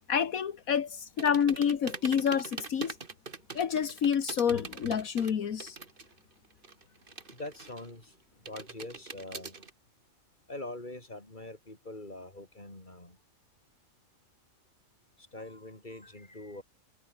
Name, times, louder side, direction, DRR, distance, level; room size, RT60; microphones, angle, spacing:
voice 1, 0.1-3.0 3.5-5.8, left 7 dB, 80° left, 1.7 m, -28 dB
sound 1, 1.2-6.2 6.4-8.0 8.5-9.7, right 4 dB, 40° right, 1.8 m, -43 dB
voice 2, 7.3-8.1 8.4-9.7 10.5-13.2 15.2-16.6, left 2 dB, 35° left, 4.9 m, -44 dB
omnidirectional pair, 1.5 m